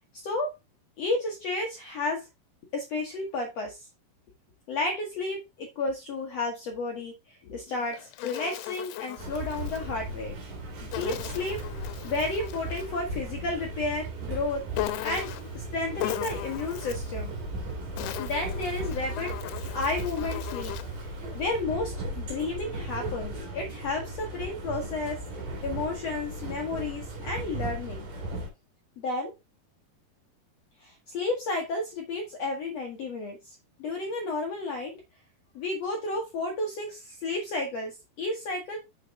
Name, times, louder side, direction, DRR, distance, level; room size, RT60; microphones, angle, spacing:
voice 1, 0.2-0.5 1.0-2.2 2.7-3.9 4.7-10.3 10.8-11.6 12.0-14.6 15.0-17.3 18.2-20.7 21.0-25.2 25.6-28.1 29.0-29.3 30.8-34.9 35.5-38.8, left 3 dB, 65° left, 1 dB, 1.7 m, -32 dB
Insect, 7.7-9.9 10.9-13.0 14.7-15.6 16.0-17.1 17.8-21.0, left 14 dB, 85° left, 2.6 m, -37 dB
sound 1, 9.2-28.5, right 2 dB, 55° right, 3.7 m, -36 dB
6.8 x 6.5 x 3.5 m, 0.23 s
omnidirectional pair, 4.6 m